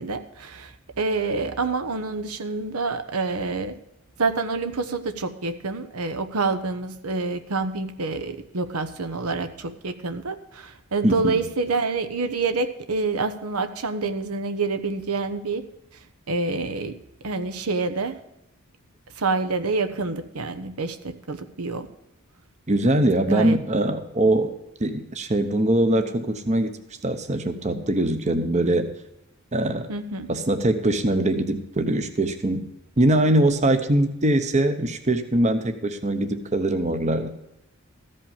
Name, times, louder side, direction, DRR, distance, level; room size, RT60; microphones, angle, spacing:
voice 1, 0.0-3.8 4.2-15.6 16.3-17.0 17.2-18.2 19.2-21.9 23.2-23.6 29.9-30.3, right 3 dB, 85° right, 9 dB, 1.0 m, -27 dB
voice 2, 11.0-11.4 22.7-24.5 24.8-26.8 27.0-28.9 29.5-29.9 30.3-32.7 33.0-37.3, right 1 dB, 30° right, 8 dB, 0.8 m, -22 dB
14.5 x 5.4 x 7.2 m, 0.87 s
head